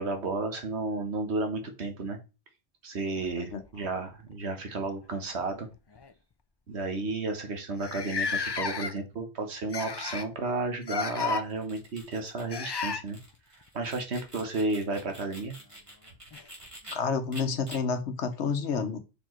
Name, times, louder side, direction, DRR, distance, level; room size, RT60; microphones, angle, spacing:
voice 1, 0.0-2.2 2.8-5.7 6.7-13.2 13.7-15.5, right 3 dB, 75° right, 1.6 m, -32 dB
sound 1, 3.2-4.3 5.4-5.5 5.9-6.1 6.8-6.9 7.1-7.2 7.8-9.2 9.7-10.3 10.8-11.4 12.5-13.0 15.2-15.3 16.3-16.4, left 5 dB, 40° left, 0.4 m, -33 dB
sound 2, 11.4-16.9 17.3-17.8, right 1 dB, 30° right, 2.5 m, -47 dB
voice 2, 16.9-19.0, left 5 dB, 85° left, 1.2 m, -29 dB
5.4 x 4.7 x 4.4 m
omnidirectional pair, 1.1 m